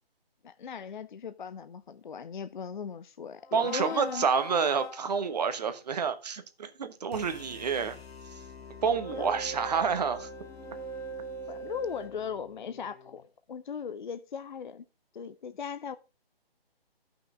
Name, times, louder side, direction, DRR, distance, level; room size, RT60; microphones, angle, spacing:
voice 1, 0.4-4.3 9.1-9.4 11.5-13.2 13.5-14.8 15.1-16.0, left 6 dB, 50° left, 0.5 m, -38 dB
sound 1, 3.4-5.6 8.9-12.1, right 2 dB, 5° left, 1.3 m, -42 dB
voice 2, 3.5-8.0 8.8-10.3, right 6 dB, 40° right, 1.1 m, -28 dB
sound 2, 7.1-13.3, left 6 dB, 80° left, 1.8 m, -49 dB
12.5 x 5.8 x 3.7 m
figure-of-eight pair, 155°, 30 cm